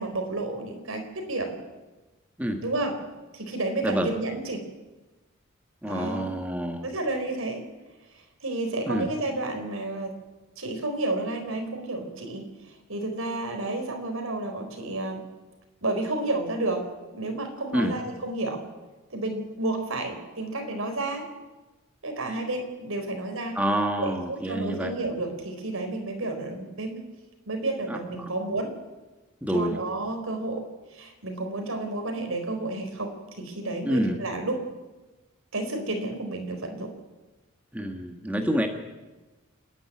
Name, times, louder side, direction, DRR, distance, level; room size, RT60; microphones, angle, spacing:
voice 1, 0.0-1.5 2.6-3.0 3.3-4.6 5.8-6.3 6.8-7.6 8.4-10.1 10.6-15.2 15.8-16.8 17.1-18.6 19.1-21.3 22.0-23.6 24.0-27.0 27.5-28.7 29.5-30.7 30.9-34.6 35.5-36.9, right 2 dB, 75° right, 5 dB, 4.4 m, -31 dB
voice 2, 5.8-6.9 8.9-9.1 17.7-17.9 23.5-24.9 27.9-28.0 29.4-29.8 33.8-34.2 37.7-38.7, right 1 dB, 5° right, 4 dB, 1.7 m, -27 dB
28.5 x 10.5 x 9.6 m, 1.2 s
head